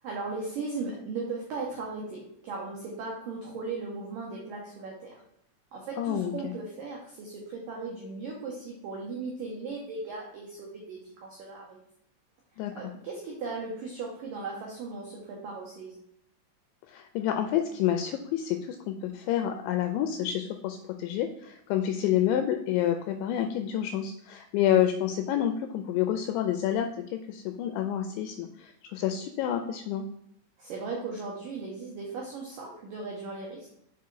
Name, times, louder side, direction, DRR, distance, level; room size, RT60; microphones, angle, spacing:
voice 1, 0.0-5.2 5.7-11.8 12.7-16.0 30.6-33.7, right 3 dB, 85° right, -2 dB, 1.9 m, -37 dB
voice 2, 6.0-6.5 12.6-12.7 16.9-30.0, left 10 dB, 85° left, 6 dB, 2.6 m, -28 dB
6.9 x 4.8 x 4.6 m, 0.74 s
omnidirectional pair, 5.7 m